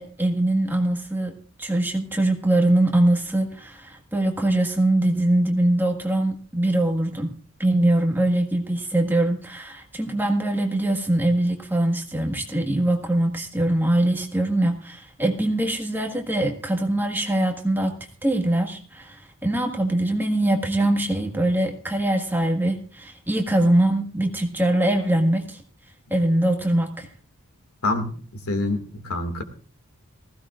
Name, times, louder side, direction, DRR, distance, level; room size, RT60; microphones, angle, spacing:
voice 1, 0.0-1.3 1.6-7.3 7.6-17.9 18.2-25.6 26.1-27.1, right 1 dB, 10° right, 3 dB, 1.6 m, -22 dB
voice 2, 27.8-29.4, left 2 dB, 90° left, 6 dB, 2.2 m, -27 dB
19.5 x 16.0 x 2.5 m, 0.40 s
head